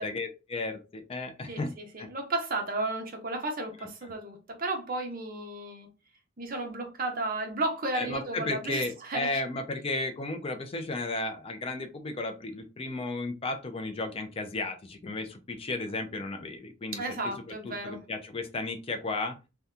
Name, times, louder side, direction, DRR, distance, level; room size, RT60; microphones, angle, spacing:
voice 1, 0.0-1.7 2.0-2.1 7.9-17.0 17.6-19.3, left 2 dB, 30° left, 0.4 m, -34 dB
voice 2, 1.5-5.9 6.4-9.4 17.0-18.0, right 2 dB, 45° right, 0.8 m, -33 dB
2.7 x 2.2 x 3.5 m
head